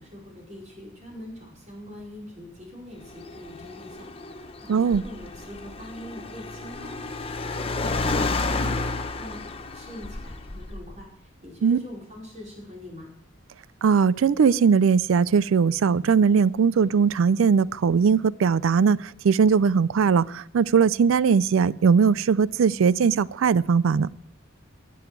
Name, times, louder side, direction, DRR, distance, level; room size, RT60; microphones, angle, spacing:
voice 1, 0.0-7.0 7.2-9.4 9.7-13.1, left 1 dB, 35° right, 5.1 m, -43 dB
Car, 3.0-11.0, left 3 dB, 30° left, 0.8 m, -31 dB
voice 2, 4.7-5.0 11.6-11.8 13.8-24.1, right 6 dB, 75° right, 0.4 m, -20 dB
18.5 x 7.1 x 4.6 m
head